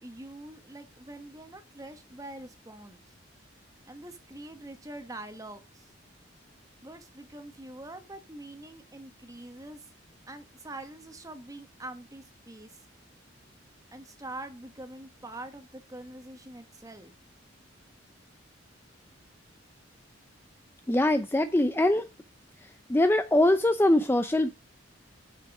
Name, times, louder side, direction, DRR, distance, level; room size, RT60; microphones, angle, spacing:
voice 1, 0.0-3.0 3.9-5.9 6.8-9.8 10.3-12.8 13.9-17.1, right 2 dB, 15° right, 1.2 m, -44 dB
voice 2, 20.9-22.1 22.9-24.5, left 1 dB, 10° left, 0.4 m, -23 dB
8.6 x 5.9 x 5.9 m
head